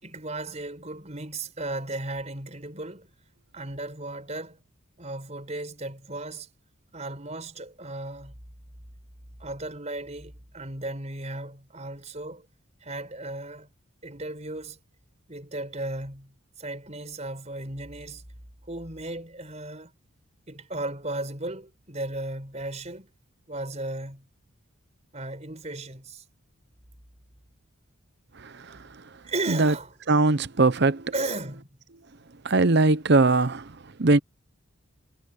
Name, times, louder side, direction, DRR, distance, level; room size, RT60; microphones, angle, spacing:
voice 1, 0.0-3.1 3.5-4.6 5.0-6.5 6.9-8.3 9.4-12.5 12.8-13.7 14.0-14.8 15.3-18.2 18.7-19.9 20.5-23.1 23.5-24.3 25.1-26.2 29.2-29.9 31.1-31.7, right 2 dB, 30° right, 4.9 m, -35 dB
voice 2, 28.4-28.8 29.5-29.7 30.1-31.1 32.4-34.2, right 3 dB, 50° right, 0.8 m, -21 dB
head